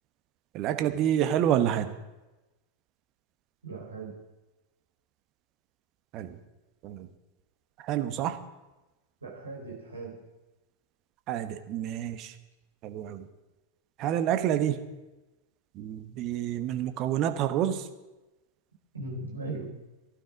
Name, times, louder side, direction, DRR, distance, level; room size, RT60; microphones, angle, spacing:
voice 1, 0.5-1.9 6.1-6.4 6.8-7.1 7.8-8.4 11.3-12.4 12.8-13.3 14.0-14.8 15.7-17.9, right 10 dB, 40° right, 9 dB, 1.1 m, -28 dB
voice 2, 3.6-4.1 9.2-10.2 18.9-19.7, right 2 dB, 75° right, -2 dB, 4.8 m, -38 dB
14.5 x 12.0 x 5.2 m, 1.1 s
figure-of-eight pair, 90°, 0 cm